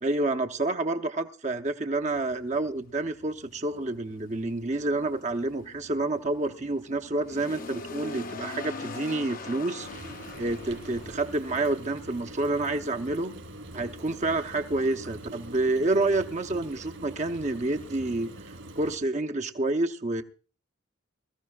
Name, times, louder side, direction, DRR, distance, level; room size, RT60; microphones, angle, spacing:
voice 1, 0.0-9.9 10.4-13.3 13.7-18.3 18.7-20.2, right 2 dB, 35° right, 5 dB, 0.8 m, -28 dB
sound 1, 2.0-16.5, left 3 dB, 45° left, 0.7 m, -44 dB
Frying (food), 9.8-19.0, right 1 dB, 75° right, 3.4 m, -44 dB
21.5 x 14.5 x 2.4 m, 0.37 s
head